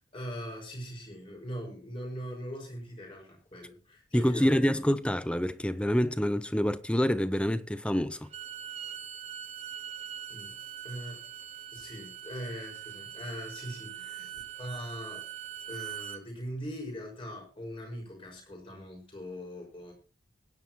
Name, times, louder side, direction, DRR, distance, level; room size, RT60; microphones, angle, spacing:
voice 1, 0.0-4.8 10.3-10.6 10.8-11.2 11.7-15.3 15.7-19.9, equal, 30° left, 5.6 m, -41 dB
voice 2, 4.1-8.3, equal, 5° left, 0.5 m, -27 dB
Bowed string instrument, 8.2-16.2, right 10 dB, 35° right, 1.0 m, -42 dB
21.5 x 10.5 x 3.0 m
head